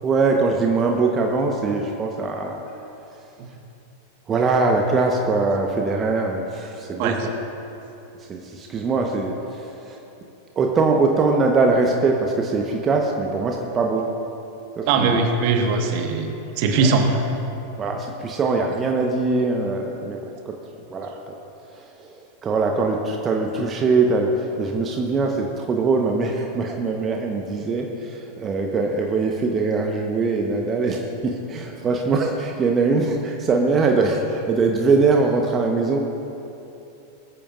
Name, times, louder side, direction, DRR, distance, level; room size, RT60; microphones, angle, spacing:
voice 1, 0.0-2.6 4.3-7.2 8.3-10.0 10.6-14.1 14.8-15.2 16.6-16.9 17.8-20.6 20.9-21.3 21.7-36.0, right 3 dB, 25° right, 2 dB, 1.1 m, -22 dB
voice 2, 14.9-16.3 16.6-17.1, right 4 dB, 45° right, 4 dB, 1.5 m, -20 dB
21.5 x 14.0 x 2.6 m, 2.8 s
figure-of-eight pair, 90°, 0 cm